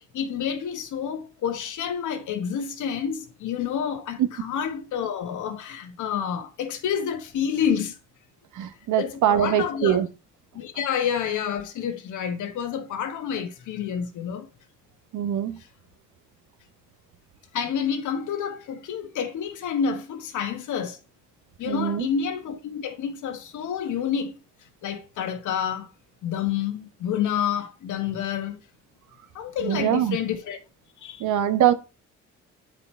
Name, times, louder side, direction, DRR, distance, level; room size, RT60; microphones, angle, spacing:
voice 1, 0.1-8.0 9.0-10.0 10.5-14.5 15.6-15.7 17.5-21.0 21.6-24.4 24.8-25.9 26.2-28.6 29.3-30.6 31.0-31.2, left 8 dB, 75° left, 1.4 m, -29 dB
voice 2, 8.5-10.1 15.1-15.6 21.7-22.1 29.6-30.2 31.2-31.7, right 10 dB, 80° right, 1.0 m, -23 dB
8.5 x 4.9 x 4.4 m
cardioid pair, 90°, 30 cm